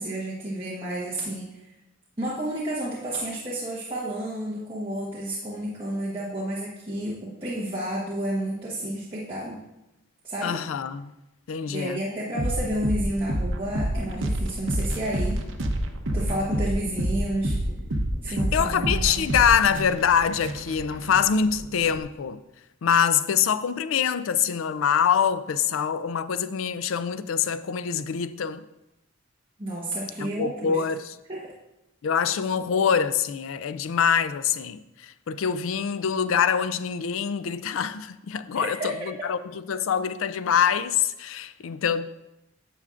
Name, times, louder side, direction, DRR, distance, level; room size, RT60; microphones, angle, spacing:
voice 1, 0.0-1.6 2.2-9.6 10.2-10.6 11.7-15.4 16.1-17.6 18.2-19.2 29.6-30.8 31.3-31.5 38.5-39.1, right 1 dB, 25° right, 1.1 m, -31 dB
voice 2, 10.4-11.1 11.5-12.0 18.3-22.4 22.8-28.6 30.2-31.1 32.0-42.1, left 7 dB, 80° left, 0.4 m, -25 dB
sound 1, 12.4-22.0, right 1 dB, 65° right, 0.8 m, -28 dB
9.8 x 7.0 x 2.5 m
head